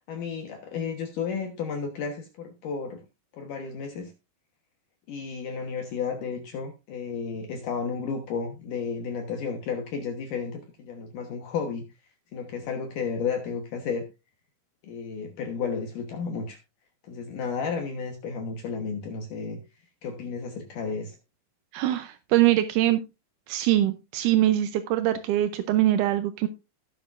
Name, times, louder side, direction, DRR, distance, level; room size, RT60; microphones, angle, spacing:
voice 1, 0.1-3.0 3.3-4.1 5.1-11.9 12.3-14.1 14.8-16.6 17.0-19.6 20.0-21.2, left 5 dB, 65° left, 2.6 m, -32 dB
voice 2, 21.7-23.0 23.5-26.5, right 14 dB, 80° right, 1.9 m, -23 dB
18.5 x 6.8 x 2.5 m
omnidirectional pair, 4.3 m